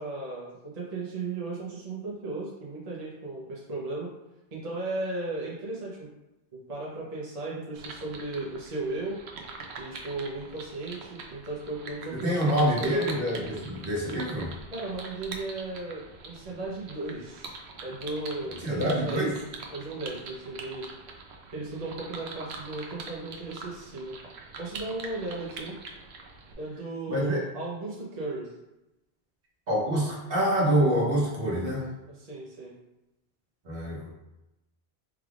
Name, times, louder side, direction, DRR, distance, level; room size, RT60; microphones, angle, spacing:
voice 1, 0.0-4.1 4.5-6.1 6.7-9.2 9.8-13.0 14.7-17.5 17.8-19.2 19.7-20.8 21.5-24.2 24.6-25.7 26.6-28.5 32.2-32.8, right 2 dB, 40° right, -5 dB, 0.9 m, -36 dB
sound 1, 7.8-26.5, right 3 dB, 85° right, 0.9 m, -43 dB
voice 2, 12.1-14.5 18.6-19.3 27.1-27.4 29.7-31.9 33.6-34.1, equal, 60° right, -4 dB, 1.3 m, -26 dB
4.7 x 3.4 x 2.4 m, 0.94 s
omnidirectional pair, 1.1 m